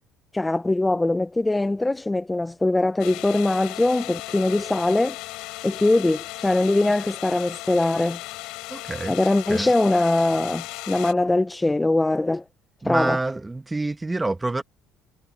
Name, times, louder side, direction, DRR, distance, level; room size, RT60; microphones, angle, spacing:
voice 1, 0.3-5.2 5.6-8.2 9.1-12.4 12.8-13.2, left 2 dB, 15° left, 0.6 m, -22 dB
sound 1, 3.0-11.1, left 21 dB, 80° left, 4.6 m, -36 dB
voice 2, 8.7-9.1 9.5-9.7 12.8-14.6, right 2 dB, 15° right, 1.4 m, -27 dB
supercardioid pair, 85°, 0 cm